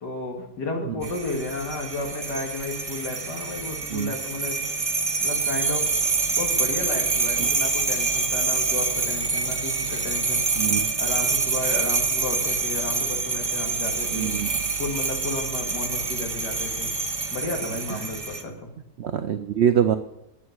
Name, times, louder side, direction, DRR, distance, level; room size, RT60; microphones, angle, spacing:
voice 1, 0.0-4.6 5.2-5.9 6.3-14.3 14.8-16.9 17.3-18.7, left 2 dB, 75° left, 2 dB, 2.8 m, -32 dB
sound 1, 1.0-18.4, right 4 dB, 25° right, 0.8 m, -26 dB
voice 2, 10.6-10.9 14.1-14.5 19.0-20.0, right 9 dB, 85° right, 10 dB, 0.6 m, -24 dB
8.7 x 8.2 x 9.3 m, 0.83 s
omnidirectional pair, 1.8 m